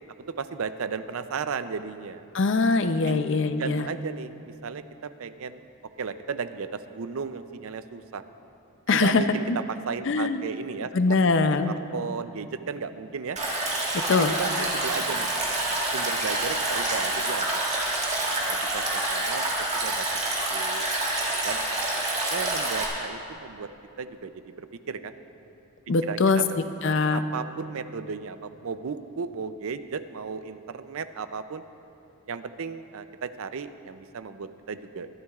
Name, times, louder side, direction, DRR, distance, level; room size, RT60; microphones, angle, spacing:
voice 1, 0.3-2.3 3.1-3.2 3.6-5.6 6.0-8.2 8.9-11.2 11.7-13.4 14.1-15.3 15.9-17.6 18.1-19.4 19.7-20.1 20.5-20.9 21.2-21.6 22.3-23.7 24.0-24.3 24.6-25.2 26.0-31.6 32.3-35.1, right 5 dB, 70° right, 11 dB, 0.5 m, -35 dB
voice 2, 2.3-3.9 8.9-9.2 9.5-9.6 10.1-10.4 10.9-11.8 13.9-14.3 25.9-26.4 26.8-27.2, left 4 dB, 55° left, 10 dB, 0.5 m, -22 dB
Stream, 13.4-22.9, right 2 dB, 30° right, 2.0 m, -27 dB
21.0 x 12.5 x 2.4 m, 2.8 s
head